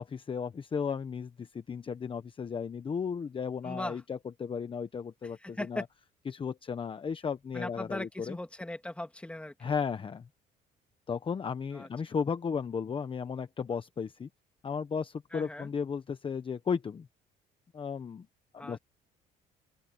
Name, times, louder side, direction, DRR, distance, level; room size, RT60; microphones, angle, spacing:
voice 1, 0.0-5.8 6.3-8.4 9.6-10.3 11.1-14.3 14.6-17.1 17.7-18.3 18.5-18.8, left 6 dB, 30° left, 1.1 m, -35 dB
voice 2, 3.6-4.0 5.4-5.9 7.5-9.7 11.7-11.9 15.3-15.7 18.6-18.8, left 1 dB, 5° left, 2.4 m, -39 dB
open air
cardioid pair, 110°, 17 cm